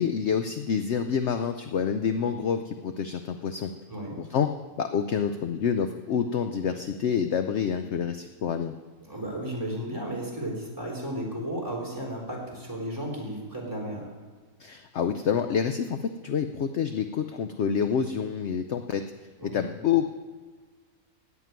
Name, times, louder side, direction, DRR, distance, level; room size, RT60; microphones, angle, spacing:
voice 1, 0.0-3.7 4.2-4.5 4.8-8.7 14.6-19.0 19.4-20.1, left 7 dB, 60° left, 8 dB, 0.8 m, -27 dB
voice 2, 9.1-14.1 19.4-19.6, right 1 dB, 10° right, -3 dB, 3.7 m, -34 dB
16.5 x 6.0 x 9.4 m, 1.4 s
omnidirectional pair, 1.6 m